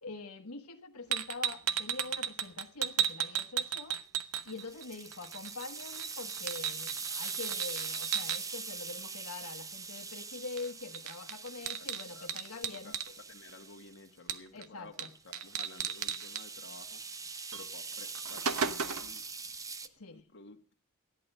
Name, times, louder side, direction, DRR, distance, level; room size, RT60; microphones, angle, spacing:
voice 1, 0.0-4.0 4.4-12.9 14.5-15.1 19.8-20.2, left 3 dB, 80° left, 1.3 m, -44 dB
sound 1, 1.1-4.8 5.1-8.4 10.6-10.7 10.9-13.1 14.3-14.7 15.0-15.1 15.3-16.4 17.5-17.6 18.0-19.2, right 8 dB, 85° right, 1.0 m, -35 dB
Rainstick (Stereo), 4.4-14.0 15.1-19.9, right 4 dB, 15° right, 0.6 m, -42 dB
voice 2, 11.6-19.5 20.1-20.7, left 3 dB, 55° left, 1.5 m, -54 dB
14.5 x 11.0 x 5.4 m
head